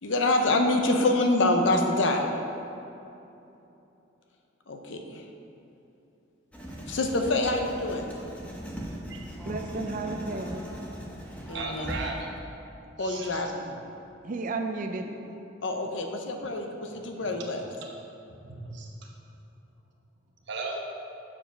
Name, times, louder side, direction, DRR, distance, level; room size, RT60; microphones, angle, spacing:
voice 1, 0.0-2.3 4.7-5.3 6.9-8.0 11.5-11.9 13.0-13.7 15.6-17.6, left 2 dB, 70° left, 3 dB, 0.7 m, -26 dB
Writing, 6.5-12.1, equal, 5° left, 0.8 m, -39 dB
voice 2, 9.4-10.6 14.2-15.1, right 3 dB, 40° right, 5 dB, 0.4 m, -33 dB
voice 3, 11.5-12.3 13.0-13.4 13.7-13.8 17.0-17.3 17.8-17.9 18.4-18.9 20.5-20.8, right 3 dB, 60° right, 0 dB, 1.0 m, -37 dB
6.9 x 4.9 x 5.0 m, 2.9 s
head